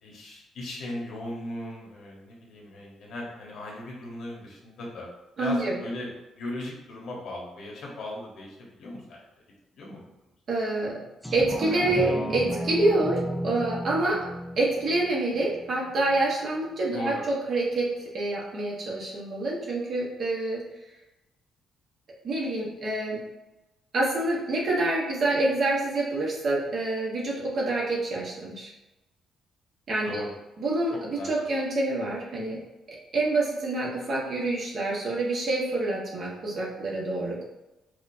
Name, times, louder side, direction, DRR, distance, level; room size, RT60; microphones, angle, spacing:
voice 1, 0.0-5.1 5.4-6.1 6.4-9.2 9.7-10.0 10.7-10.8 16.9-17.2 30.0-30.3 30.9-31.5, left 1 dB, 70° left, -2 dB, 1.2 m, -37 dB
voice 2, 5.4-5.8 10.5-11.0 11.3-14.3 14.5-20.6 22.2-23.2 23.9-28.7 29.9-30.1 30.6-30.9 31.3-32.6 32.9-37.4, right 2 dB, 50° right, -4 dB, 1.3 m, -27 dB
sound 1, 11.2-16.3 16.7-16.8, equal, ahead, 0.5 m, -34 dB
4.9 x 2.4 x 2.7 m, 0.99 s
cardioid pair, 90°, 0 cm